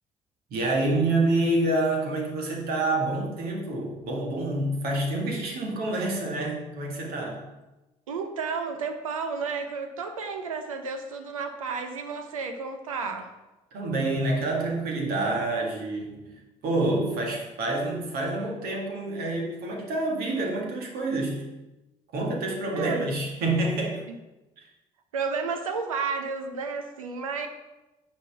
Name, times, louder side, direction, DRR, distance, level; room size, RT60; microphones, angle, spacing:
voice 1, 0.5-7.5 13.7-21.5 22.1-24.0 24.6-24.7, right 2 dB, 65° right, 0 dB, 1.9 m, -27 dB
voice 2, 8.1-13.3 22.7-23.0 24.1-24.2 25.1-27.5, right 5 dB, 85° right, 7 dB, 0.8 m, -32 dB
9.4 x 4.4 x 5.7 m, 1.0 s
figure-of-eight pair, 45°, 17 cm